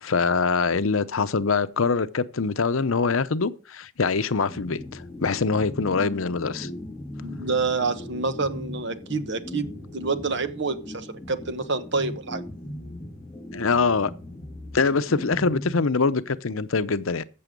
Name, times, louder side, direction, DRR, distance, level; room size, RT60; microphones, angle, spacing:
voice 1, 0.0-6.7 13.5-14.1 14.7-17.2, left 4 dB, 85° left, 0.8 m, -24 dB
sound 1, 4.5-16.4, left 1 dB, 10° left, 1.9 m, -38 dB
voice 2, 7.2-12.4, right 4 dB, 60° right, 1.2 m, -28 dB
14.5 x 7.0 x 5.2 m
head